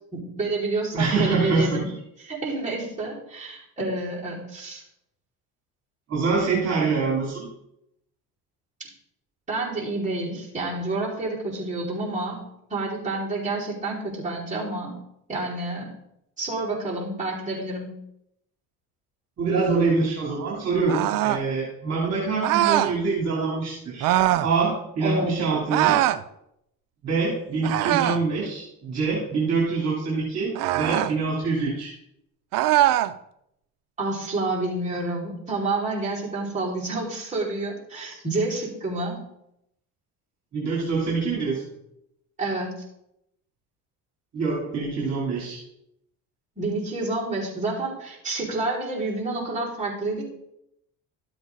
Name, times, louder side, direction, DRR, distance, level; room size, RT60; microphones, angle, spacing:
voice 1, 0.1-1.9 2.2-4.8 9.5-12.4 12.7-15.0 15.3-15.9 16.4-18.0 25.0-25.5 34.0-39.2 42.4-42.7 46.6-50.3, right 2 dB, 20° right, -6 dB, 5.2 m, -29 dB
voice 2, 0.9-1.8 6.1-7.5 19.4-24.1 24.4-26.0 27.0-31.9 38.0-38.2 40.5-41.6 44.3-45.6, right 4 dB, 50° right, -4 dB, 3.4 m, -25 dB
sound 1, 20.9-21.5 22.4-22.9 24.0-24.5 25.7-26.2 27.6-28.3 30.5-31.1 32.5-33.1, right 14 dB, 70° right, 0.6 m, -22 dB
13.0 x 7.9 x 4.1 m, 0.79 s
cardioid pair, 100°, 34 cm